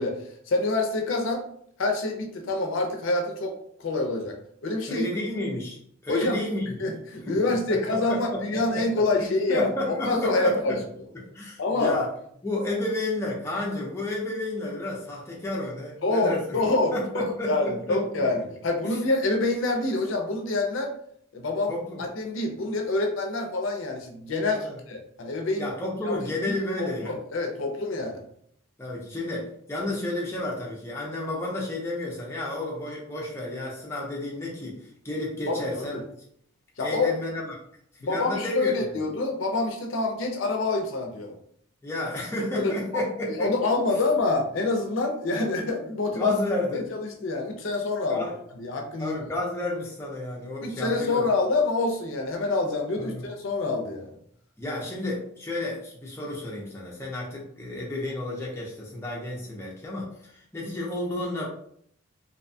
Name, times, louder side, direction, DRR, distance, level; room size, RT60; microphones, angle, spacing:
voice 1, 0.0-1.4 1.8-3.5 3.8-4.4 4.6-5.0 6.1-6.4 6.8-9.7 10.0-10.8 11.6-12.0 16.0-20.9 21.3-21.7 22.0-25.7 26.1-26.2 26.5-28.2 35.5-36.0 36.8-37.1 38.0-41.4 42.4-43.0 43.3-46.3 46.7-46.8 47.2-48.3 48.6-49.2 50.6-54.1, left 2 dB, 70° left, 3 dB, 0.5 m, -26 dB
voice 2, 4.9-6.8 7.3-10.8 11.1-12.1 12.4-16.6 16.9-18.0 18.8-19.0 21.7-22.0 24.5-24.8 25.6-27.2 28.8-36.1 36.8-37.5 38.0-38.7 41.8-43.5 46.1-46.8 48.1-48.4 49.0-51.2 53.0-53.2 54.6-61.5, left 1 dB, 10° left, -4 dB, 0.5 m, -31 dB
2.7 x 2.2 x 2.6 m, 0.66 s
head